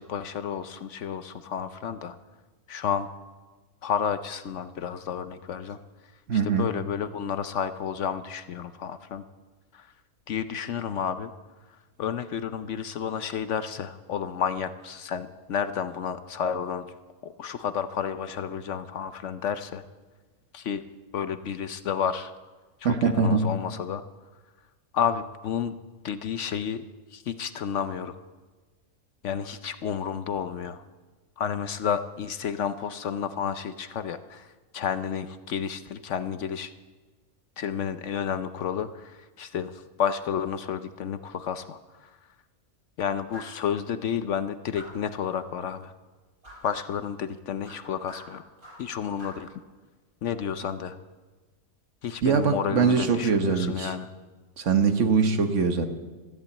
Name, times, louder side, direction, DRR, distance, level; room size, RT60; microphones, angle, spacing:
voice 1, 0.0-2.2 2.7-3.1 3.8-5.8 6.3-9.2 9.7-9.9 10.3-11.3 12.0-16.9 17.2-19.8 20.5-20.8 21.1-22.3 22.8-24.0 24.9-25.8 26.0-26.8 27.1-28.2 29.2-30.8 31.4-36.7 37.6-42.1 43.0-45.9 46.6-48.4 48.8-49.5 50.2-51.0 52.0-54.1, left 8 dB, 65° left, 12 dB, 0.9 m, -31 dB
voice 2, 6.3-6.7 22.8-23.5 52.2-53.9 54.6-55.9, right 5 dB, 60° right, 8 dB, 1.4 m, -22 dB
sound 1, 43.3-43.6 44.7-45.1 46.4-46.7 47.6-48.9 49.2-49.5, left 1 dB, 75° right, 7.2 m, -46 dB
13.5 x 12.0 x 8.3 m, 1.3 s
omnidirectional pair, 1.5 m